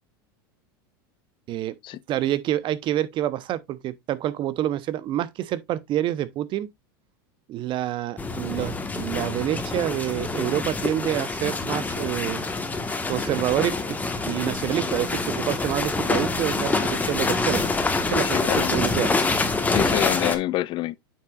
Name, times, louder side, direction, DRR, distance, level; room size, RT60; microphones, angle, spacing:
voice 1, 2.1-6.7 7.5-12.4 13.1-13.8 14.3-17.6 18.0-19.1, right 12 dB, 45° right, 0.8 m, -27 dB
sound 1, 8.2-20.4, left 3 dB, 15° left, 1.4 m, -26 dB
voice 2, 18.2-18.8 19.7-21.0, left 16 dB, 45° left, 0.4 m, -27 dB
8.9 x 5.8 x 2.4 m
hypercardioid pair, 100°, 12 cm